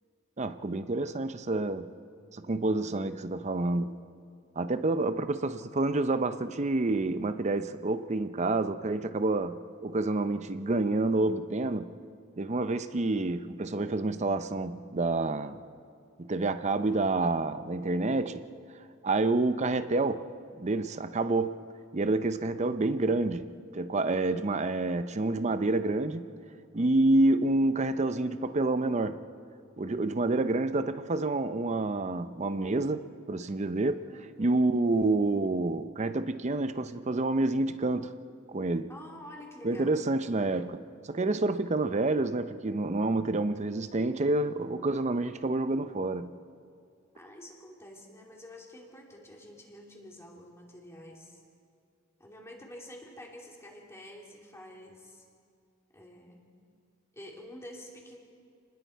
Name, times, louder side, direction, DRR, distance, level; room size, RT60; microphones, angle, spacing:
voice 1, 0.4-1.9 2.3-4.0 4.6-12.0 12.4-15.6 16.2-18.4 19.0-20.3 20.6-21.6 21.9-26.3 26.7-29.3 29.8-34.1 34.4-38.2 38.5-38.9 39.6-46.3, right 2 dB, 35° right, 0.6 m, -28 dB
voice 2, 22.0-22.4 34.0-34.7 38.9-40.0 47.1-51.4 52.2-55.3 55.9-56.5 57.1-58.2, left 1 dB, 15° left, 3.0 m, -48 dB
29.5 x 20.0 x 4.7 m
head